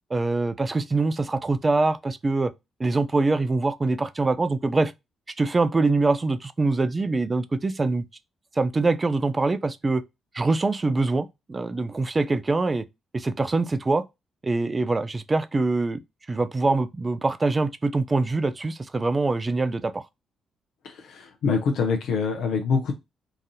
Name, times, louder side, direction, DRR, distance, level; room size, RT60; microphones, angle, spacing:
voice 1, 0.1-2.5 2.8-4.9 5.4-8.0 8.6-10.0 10.3-12.8 13.1-14.0 14.4-16.0 16.3-20.0, right 3 dB, 30° right, 0.5 m, -24 dB
voice 2, 20.8-22.9, left 5 dB, 70° left, 0.6 m, -25 dB
3.9 x 2.5 x 2.7 m
hypercardioid pair, 45°, 0 cm